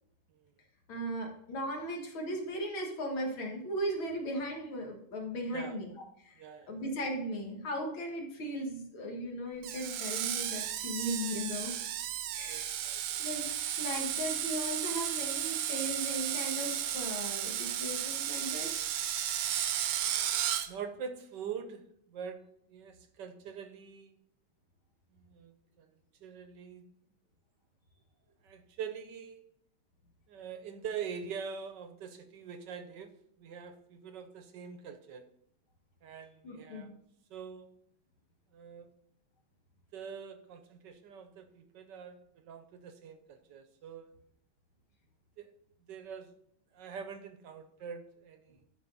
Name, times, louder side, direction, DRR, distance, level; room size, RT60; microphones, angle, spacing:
voice 1, 0.9-5.9 6.2-6.4 6.7-11.8 12.3-12.8 13.2-18.7 36.4-36.9, equal, 70° left, 0 dB, 2.4 m, -37 dB
voice 2, 6.3-6.7 12.4-13.3 20.7-22.4 22.7-24.2 25.1-26.9 28.4-29.5 30.3-33.1 33.4-35.2 36.0-36.9 37.3-37.7 38.5-38.9 39.9-44.1 45.4-45.5 45.8-46.3 46.7-48.6, right 7 dB, 65° right, 8 dB, 1.3 m, -44 dB
Screech, 9.6-20.7, right 10 dB, 85° right, 1.6 m, -34 dB
12.5 x 4.7 x 3.9 m, 0.71 s
omnidirectional pair, 2.3 m